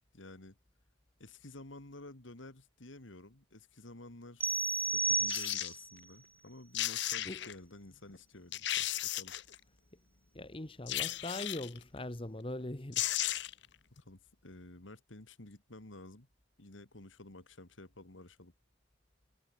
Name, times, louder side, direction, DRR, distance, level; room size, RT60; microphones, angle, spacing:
voice 1, 0.1-0.6 1.2-4.5 4.9-9.4 14.0-16.3 16.6-18.5, left 2 dB, 80° left, 2.4 m, -52 dB
sound 1, 4.4-5.9, right 4 dB, 10° right, 0.8 m, -32 dB
sound 2, 5.3-5.7 6.5-6.6 6.7-7.6 8.1-8.2 8.5-9.6 10.9-11.8 12.6-12.7 12.9-13.7 14.0-14.1, left 13 dB, 60° left, 0.9 m, -35 dB
voice 2, 10.3-13.1, left 1 dB, 25° left, 1.2 m, -41 dB
head